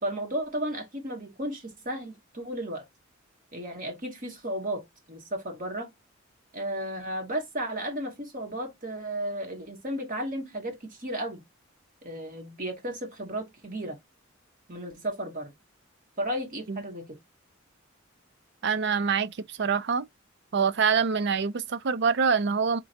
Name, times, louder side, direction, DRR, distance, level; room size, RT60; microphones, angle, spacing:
voice 1, 0.0-2.8 3.5-5.9 6.5-11.4 12.0-14.0 14.7-15.5 16.2-17.2, right 1 dB, 45° right, 1.8 m, -34 dB
voice 2, 18.6-20.1 20.5-22.8, right 6 dB, 60° right, 0.5 m, -25 dB
4.4 x 3.7 x 2.5 m
head